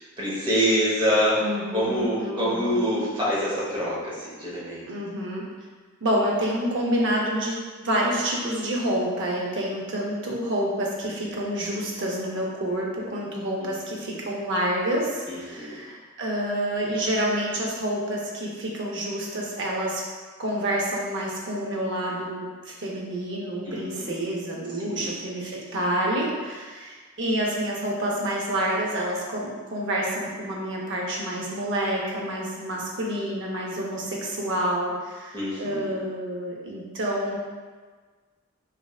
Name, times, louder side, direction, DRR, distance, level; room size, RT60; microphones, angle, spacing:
voice 1, 0.2-1.4 1.7-4.8 15.3-15.8 23.6-24.2 24.8-25.1 35.3-36.0, equal, 25° right, -7 dB, 0.8 m, -26 dB
voice 2, 1.4-3.0 4.9-5.5 6.0-7.6 7.8-20.0 20.4-37.4, right 1 dB, 60° right, -2 dB, 0.6 m, -28 dB
3.1 x 2.7 x 2.3 m, 1.4 s
head